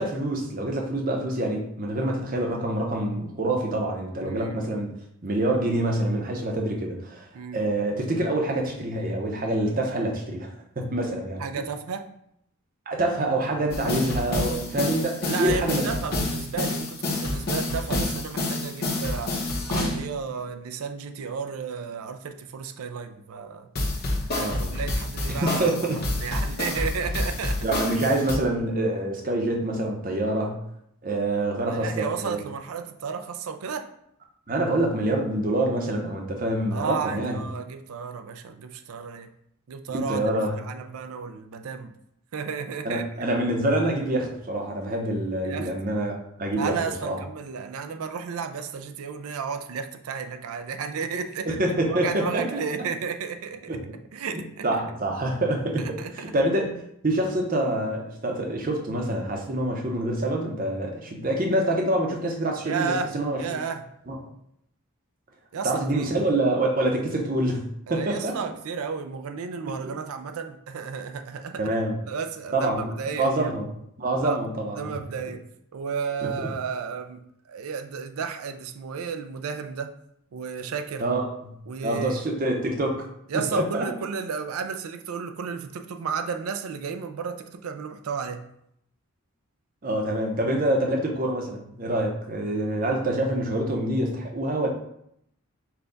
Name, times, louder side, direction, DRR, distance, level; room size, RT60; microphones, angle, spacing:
voice 1, 0.0-4.9 5.2-7.3 7.5-10.5 10.8-11.4 12.9-15.9 24.3-24.8 25.3-26.0 27.6-30.6 31.0-32.4 34.5-37.4 39.9-40.6 42.8-47.2 51.5-52.4 53.7-53.8 54.6-55.9 56.1-56.8 57.0-63.6 64.1-64.2 65.6-68.4 69.6-69.9 71.6-72.0 72.5-72.8 73.2-73.7 74.0-75.0 76.2-76.5 81.0-81.5 81.8-83.1 83.3-83.8 89.8-94.7, right 1 dB, 40° right, 1 dB, 0.7 m, -26 dB
voice 2, 4.2-4.7 7.3-7.7 11.4-12.1 15.3-23.7 24.3-27.7 31.7-33.9 36.7-39.3 39.7-41.9 42.3-43.2 45.4-45.7 46.5-51.6 51.9-53.8 54.1-54.7 56.0-56.3 62.6-63.1 63.4-63.8 65.5-66.1 67.9-71.8 72.1-73.5 74.2-74.4 74.7-75.4 75.7-79.9 80.3-81.1 81.7-82.2 83.3-88.4, right 6 dB, 80° right, 7 dB, 0.4 m, -33 dB
sound 1, 13.7-20.1 23.8-28.3, left 2 dB, 45° left, 1.0 m, -28 dB
5.7 x 2.3 x 3.9 m, 0.75 s
head